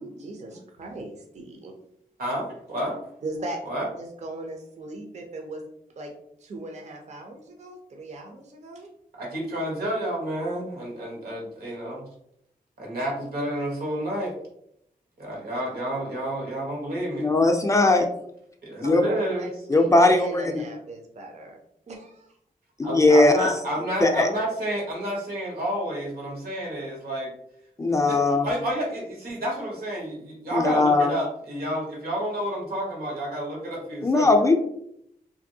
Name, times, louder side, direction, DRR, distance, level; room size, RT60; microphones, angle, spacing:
voice 1, 0.0-1.7 3.2-3.6 3.9-5.6 6.0-6.1 6.4-8.9 18.8-21.6 21.9-22.3, right 2 dB, 50° right, 2 dB, 0.5 m, -38 dB
voice 2, 2.2-3.0 3.6-3.9 9.1-12.1 12.8-14.3 15.2-17.3 18.6-19.5 22.8-27.3 28.0-34.3, right 1 dB, 90° right, -2 dB, 1.1 m, -30 dB
voice 3, 17.2-18.1 18.8-19.0 19.7-20.5 22.8-23.5 24.0-24.3 27.8-28.5 30.5-31.1 34.0-34.6, left 2 dB, 20° left, 3 dB, 0.3 m, -19 dB
2.8 x 2.6 x 2.6 m, 0.73 s
wide cardioid pair, 135°, 15 cm